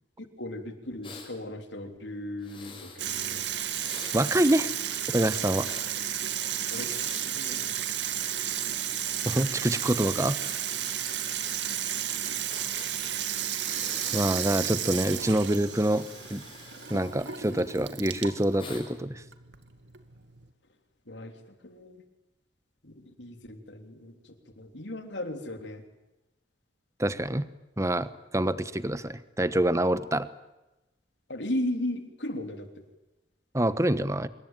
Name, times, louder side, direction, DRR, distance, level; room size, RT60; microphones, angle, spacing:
voice 1, 0.4-3.5 6.7-7.7 21.1-22.0 22.8-25.8 31.3-32.8, left 1 dB, 85° left, 6 dB, 3.5 m, -36 dB
Breathing, 1.0-1.3 2.4-3.0 3.7-5.9 6.6-8.3 9.2-11.6 11.8-11.9 12.5-13.1 13.6-14.3 14.7-15.2 15.6-17.8 18.6-18.8, left 4 dB, 30° left, 6.2 m, -47 dB
Water tap faucet / Sink (filling or washing), 3.0-20.5, right 10 dB, 85° right, 2.2 m, -33 dB
voice 2, 4.1-4.7 5.1-5.7 9.3-10.6 14.1-16.0 16.3-16.4 16.9-19.2 27.0-27.5 27.8-30.3 33.5-34.3, right 1 dB, 15° right, 14 dB, 1.1 m, -26 dB
26.5 x 21.5 x 9.2 m, 1.0 s
head